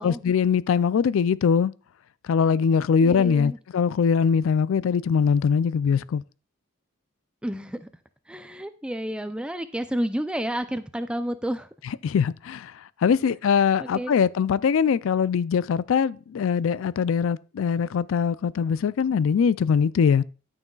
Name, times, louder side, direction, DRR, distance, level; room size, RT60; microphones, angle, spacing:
voice 1, 0.0-1.7 2.2-6.2 12.0-20.2, left 6 dB, 70° left, 0.3 m, -22 dB
voice 2, 3.0-3.6 7.4-7.9 8.3-11.7 13.8-14.1, right 1 dB, 5° right, 0.4 m, -30 dB
13.0 x 6.3 x 2.3 m
head